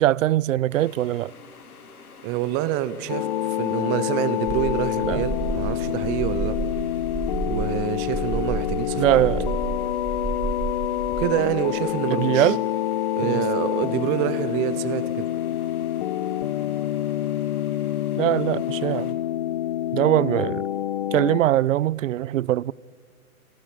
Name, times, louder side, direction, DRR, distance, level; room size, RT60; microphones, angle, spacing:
voice 1, 0.0-1.3 5.0-5.2 9.0-9.5 12.1-12.6 13.2-13.4 18.2-19.2 19.9-20.6 21.1-22.7, right 13 dB, 60° right, 0.5 m, -22 dB
sound 1, 0.7-19.1, left 5 dB, 80° left, 3.0 m, -47 dB
voice 2, 2.2-6.6 7.5-9.3 11.1-12.5 13.2-15.3, right 13 dB, 25° right, 0.8 m, -27 dB
sound 2, 3.1-21.4, left 12 dB, 40° left, 0.5 m, -27 dB
sound 3, 4.4-11.2, right 3 dB, ahead, 4.6 m, -31 dB
28.0 x 14.0 x 7.6 m
hypercardioid pair, 130°, 44 cm